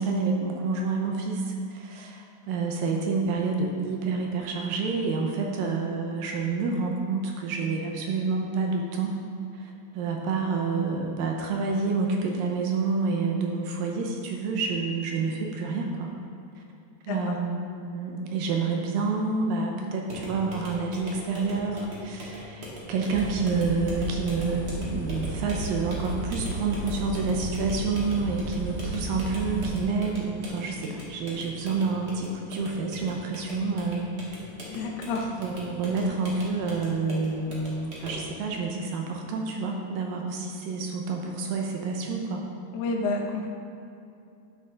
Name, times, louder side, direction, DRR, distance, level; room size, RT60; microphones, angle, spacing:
voice 1, 0.0-9.2 9.5-16.1 16.6-16.7 17.0-34.1 35.3-42.4, right 4 dB, 75° right, 1 dB, 2.2 m, -28 dB
sound 1, 20.1-38.3, equal, 45° right, 1.3 m, -41 dB
sound 2, 23.1-29.8, right 1 dB, 50° left, 2.2 m, -34 dB
voice 2, 34.7-35.3 42.7-43.5, left 3 dB, 75° left, 1 dB, 1.8 m, -29 dB
12.0 x 6.3 x 3.8 m, 2.6 s
omnidirectional pair, 4.6 m